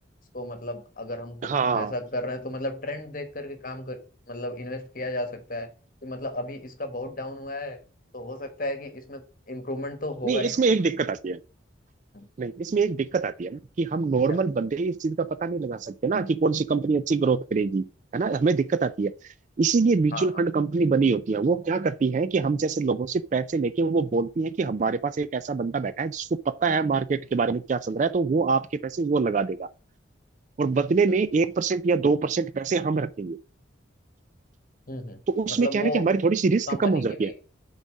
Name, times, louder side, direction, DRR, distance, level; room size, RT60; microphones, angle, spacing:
voice 1, 0.3-4.0 4.3-5.7 6.0-7.8 8.1-10.6 12.1-12.3 14.3-14.4 20.1-20.4 34.9-35.2 35.5-36.1 36.7-37.4, left 1 dB, 45° left, 1.3 m, -34 dB
voice 2, 1.4-1.9 10.2-11.4 12.4-17.9 18.1-19.1 19.6-26.3 26.6-29.7 30.6-33.4 35.3-37.3, right 4 dB, 40° right, 0.3 m, -24 dB
7.0 x 4.1 x 6.2 m
head